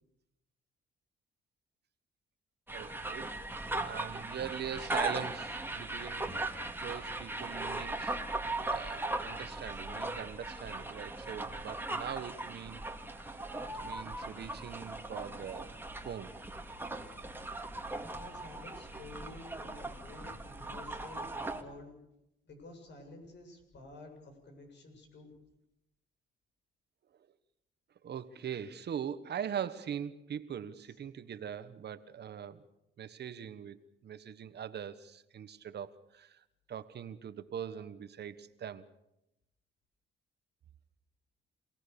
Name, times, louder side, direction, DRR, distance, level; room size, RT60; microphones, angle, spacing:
sound 1, 2.7-21.6, right 2 dB, 10° right, 2.4 m, -39 dB
voice 1, 2.7-3.4 3.8-6.5 6.8-8.2 8.7-12.9 13.1-13.3 13.7-15.8 16.0-16.3 28.0-32.6 33.0-33.8 34.0-38.9, right 8 dB, 55° right, 12 dB, 1.4 m, -42 dB
voice 2, 18.1-22.0 22.4-25.3, left 2 dB, 60° left, 4 dB, 7.8 m, -51 dB
28.0 x 18.0 x 7.0 m, 0.87 s
cardioid pair, 90°, 20 cm